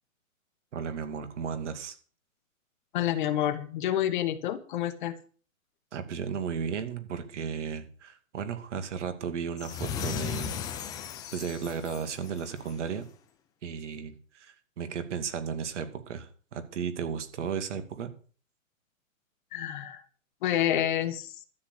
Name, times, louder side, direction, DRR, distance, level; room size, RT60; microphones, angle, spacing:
voice 1, 0.7-2.0 5.9-10.8 11.3-13.1 13.6-18.1, right 7 dB, 60° right, 9 dB, 2.5 m, -35 dB
voice 2, 2.9-5.1 19.5-20.0 20.4-21.3, left 11 dB, 35° left, 10 dB, 1.4 m, -28 dB
sound 1, 9.6-12.9, left 8 dB, 10° left, 0.7 m, -36 dB
12.5 x 6.9 x 8.3 m, 0.40 s
hypercardioid pair, 155°, 41 cm